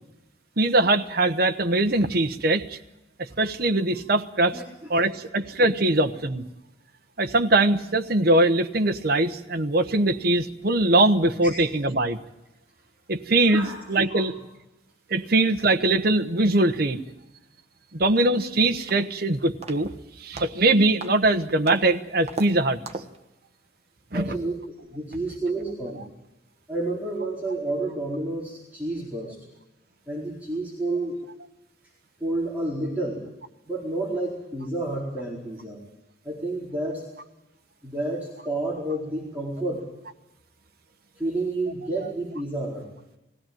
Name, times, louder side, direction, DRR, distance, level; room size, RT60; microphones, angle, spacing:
voice 1, 0.6-2.8 3.4-4.6 4.9-6.4 7.2-12.2 13.1-14.3 15.1-17.0 17.9-19.9 20.2-22.8 24.1-24.4, right 2 dB, 55° right, 6 dB, 1.1 m, -22 dB
voice 2, 4.5-4.9 5.3-5.4 13.5-13.8 14.1-14.3 24.1-24.6 24.9-26.0 26.7-29.4 30.1-31.2 32.2-33.2 33.7-35.8 36.2-37.1 37.8-39.9 41.2-42.9, right 2 dB, 10° right, -5 dB, 4.4 m, -30 dB
sound 1, 18.3-18.5 18.9-19.2 19.6-20.0 20.4-20.6 21.0-21.2 21.7-21.9 22.3-22.5 22.9-23.2, right 3 dB, 35° right, 1.4 m, -35 dB
21.0 x 16.0 x 9.2 m, 0.96 s
head